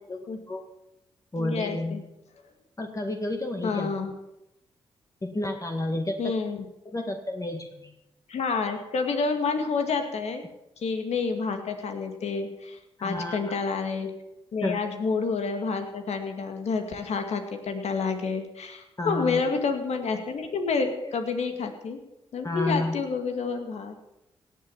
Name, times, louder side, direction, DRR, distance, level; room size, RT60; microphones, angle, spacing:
voice 1, 0.1-0.7 1.3-2.0 2.8-4.0 5.2-6.3 6.9-7.9 13.0-13.6 14.6-14.8 19.0-19.6 21.0-21.2 22.4-23.0, left 2 dB, 30° left, 3 dB, 2.0 m, -31 dB
voice 2, 1.4-2.0 3.6-4.1 6.2-6.6 8.3-10.4 10.8-14.1 14.5-22.0 22.3-23.9, left 4 dB, 70° left, 6 dB, 2.2 m, -29 dB
17.5 x 7.8 x 7.2 m, 0.87 s
supercardioid pair, 45°, 12 cm